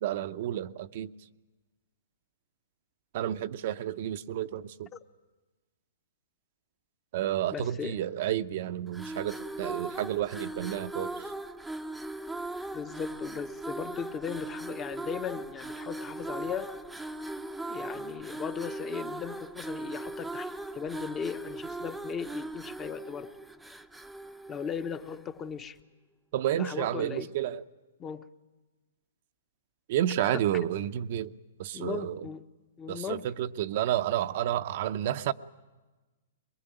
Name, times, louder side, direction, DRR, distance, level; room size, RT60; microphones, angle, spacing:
voice 1, 0.0-1.1 3.1-4.9 7.1-11.3 26.3-27.6 29.9-31.3 31.6-32.3 32.9-35.3, right 11 dB, 50° right, 10 dB, 0.8 m, -31 dB
voice 2, 7.5-8.0 12.7-16.7 17.7-23.3 24.5-25.8 26.6-27.3 28.0-28.2 30.2-30.4 31.7-32.4 32.8-33.2, left 7 dB, 20° left, 10 dB, 1.0 m, -37 dB
sound 1, 8.9-25.3, right 2 dB, ahead, 0.8 m, -39 dB
22.5 x 22.5 x 9.0 m, 1.2 s
hypercardioid pair, 135°, 0 cm